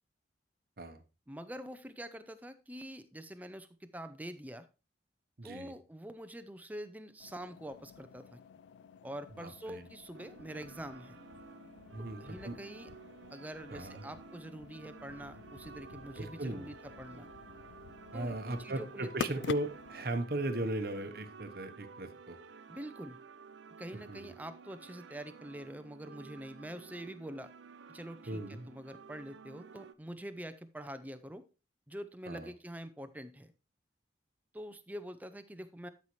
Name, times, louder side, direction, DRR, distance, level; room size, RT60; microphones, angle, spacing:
voice 1, 1.3-4.7 5.4-8.4 9.0-11.2 12.2-12.9 13.3-17.3 18.1-19.4 22.7-23.2 23.8-27.5 27.9-31.4 31.9-33.5 34.5-35.9, right 1 dB, 10° right, 10 dB, 0.6 m, -45 dB
voice 2, 5.4-5.7 9.4-9.9 11.9-12.5 13.7-14.0 16.2-16.7 18.1-22.4 24.1-24.3 28.3-28.7 32.3-32.5, right 2 dB, 55° right, 8 dB, 1.0 m, -37 dB
sound 1, 7.2-20.0, left 7 dB, 75° left, 0.3 m, -48 dB
sound 2, 10.1-29.9, right 5 dB, 85° right, 0.6 m, -53 dB
12.5 x 5.7 x 3.1 m, 0.31 s
head